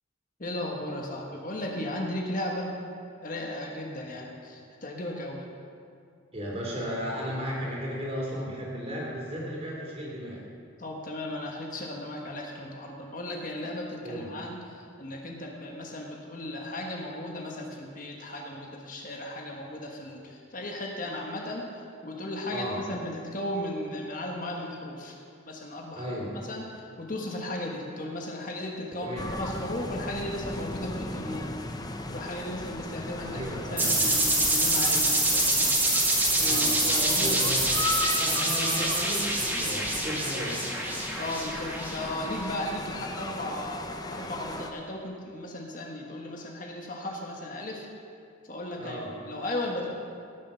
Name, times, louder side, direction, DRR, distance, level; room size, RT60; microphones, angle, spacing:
voice 1, 0.4-2.7 3.2-5.4 10.8-25.2 25.5-26.1 26.5-31.5 32.1-35.7 36.4-37.5 41.2-47.9 48.4-49.9, left 1 dB, 45° left, 0 dB, 1.4 m, -36 dB
voice 2, 6.3-10.4 14.0-14.4 22.5-22.8 25.9-26.4 29.0-29.3 33.2-34.0 36.4-36.8 37.1-40.7 48.8-49.1, equal, 30° right, -3 dB, 3.2 m, -35 dB
sound 1, 29.2-44.7, left 2 dB, 20° left, 0.7 m, -37 dB
sound 2, 33.8-42.3, right 1 dB, 10° right, 1.6 m, -26 dB
17.5 x 7.3 x 5.7 m, 2.3 s
head